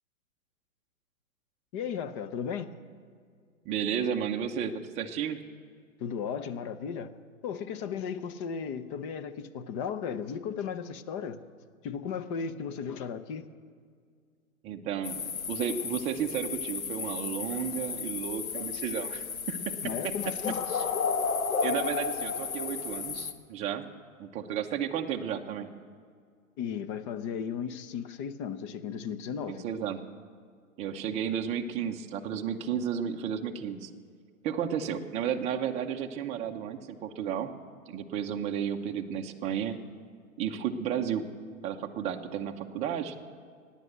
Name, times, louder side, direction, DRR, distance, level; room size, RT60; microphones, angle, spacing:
voice 1, 1.7-2.7 6.0-7.1 7.4-11.4 11.8-13.5 19.8-20.6 26.6-29.6, left 7 dB, 25° left, 11 dB, 0.6 m, -35 dB
voice 2, 3.6-5.4 14.6-20.1 20.5-20.8 21.6-23.8 24.2-25.7 29.5-30.0 30.8-33.9 34.4-37.5 37.9-39.8 40.4-41.3 41.6-43.2, right 8 dB, 15° right, 4 dB, 0.8 m, -33 dB
sound 1, 15.0-23.3, left 6 dB, 80° left, 1.5 m, -33 dB
17.0 x 9.9 x 8.0 m, 2.1 s
hypercardioid pair, 135°, 41 cm